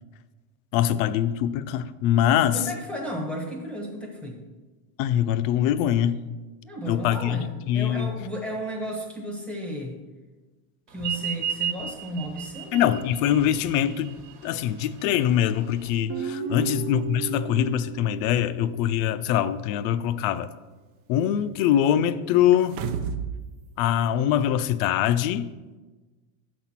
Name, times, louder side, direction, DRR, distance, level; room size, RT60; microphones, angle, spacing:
voice 1, 0.7-2.6 5.0-6.2 6.9-7.4 7.7-8.1 12.7-20.5 21.1-22.9 23.8-25.5, left 10 dB, 65° left, 13 dB, 0.5 m, -23 dB
voice 2, 2.5-4.4 6.6-9.9 10.9-12.8 16.4-16.7, equal, 5° left, 0 dB, 0.7 m, -34 dB
sound 1, 11.0-16.0, right 8 dB, 55° right, 1.2 m, -34 dB
Guitar, 16.1-19.4, right 7 dB, 30° right, 0.5 m, -35 dB
sound 2, 22.5-23.4 23.7-23.8, right 7 dB, 80° right, 0.7 m, -30 dB
6.9 x 4.2 x 5.9 m, 1.2 s
cardioid pair, 160°, 44 cm